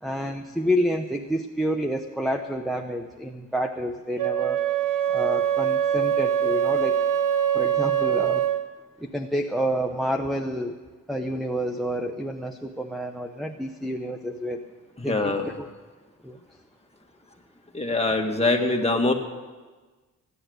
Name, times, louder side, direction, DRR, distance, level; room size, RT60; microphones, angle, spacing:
voice 1, 0.0-4.6 5.1-7.0 7.5-8.5 9.0-10.8 11.1-14.7 15.0-15.7 16.2-16.4, equal, ahead, 5 dB, 0.9 m, -29 dB
Wind instrument woodwind instrument, 4.2-8.7, right 9 dB, 70° right, 0.9 m, -23 dB
voice 2, 15.0-15.5 17.7-19.1, left 2 dB, 20° left, 2 dB, 2.0 m, -23 dB
16.5 x 10.5 x 8.0 m, 1.3 s
cardioid pair, 85°, 34 cm